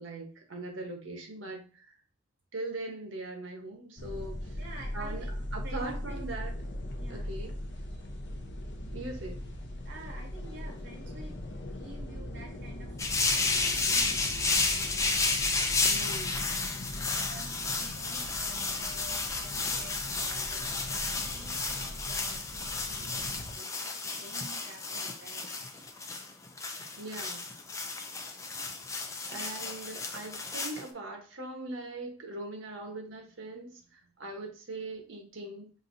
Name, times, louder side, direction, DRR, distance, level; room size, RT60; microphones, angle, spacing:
voice 1, 0.0-1.9 2.5-4.6 4.9-5.2 5.5-6.5 7.1-7.5 8.9-9.4 15.9-16.4 27.0-27.5 29.3-35.7, right 2 dB, 80° right, 2 dB, 1.0 m, -40 dB
sound 1, 4.0-23.5, left 1 dB, 60° left, 0.7 m, -40 dB
voice 2, 4.6-5.4 5.6-6.3 7.0-7.5 7.9-8.0 9.8-11.3 11.6-12.9 13.2-14.8 17.1-25.6 27.8-27.9, right 2 dB, 55° right, -1 dB, 0.6 m, -51 dB
sound 2, 13.0-30.8, left 3 dB, 15° left, 0.4 m, -32 dB
5.4 x 2.6 x 2.6 m, 0.37 s
head